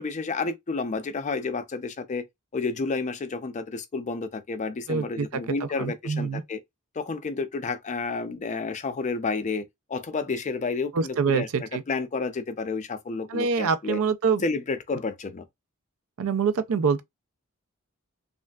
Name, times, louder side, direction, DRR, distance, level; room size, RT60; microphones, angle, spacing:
voice 1, 0.0-2.2 2.5-6.6 7.0-9.6 9.9-14.0 14.4-15.5, left 4 dB, 35° left, 0.4 m, -30 dB
voice 2, 4.9-6.4 10.9-11.8 13.3-14.4 16.2-17.0, right 5 dB, 75° right, 0.4 m, -25 dB
3.2 x 2.4 x 2.2 m
head